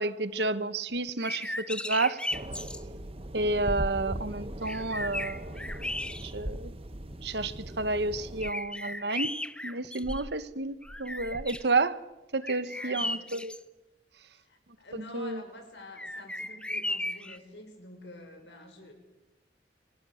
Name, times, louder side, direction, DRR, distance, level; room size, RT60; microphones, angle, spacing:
voice 1, 0.0-2.2 3.3-5.7 6.2-6.7 7.2-9.3 9.6-12.0 12.3-13.5 15.1-15.4, right 3 dB, 70° right, 1.3 m, -30 dB
sound 1, 1.1-2.8 4.2-4.3 4.7-6.6 7.1-7.2 8.4-10.5 10.8-11.7 12.4-13.6 16.0-17.4, left 1 dB, 5° left, 0.8 m, -36 dB
sound 2, 2.3-8.5, right 1 dB, 35° right, 1.2 m, -39 dB
voice 2, 12.7-13.3 14.3-18.9, left 1 dB, 85° left, 6.2 m, -48 dB
28.5 x 23.5 x 6.6 m
head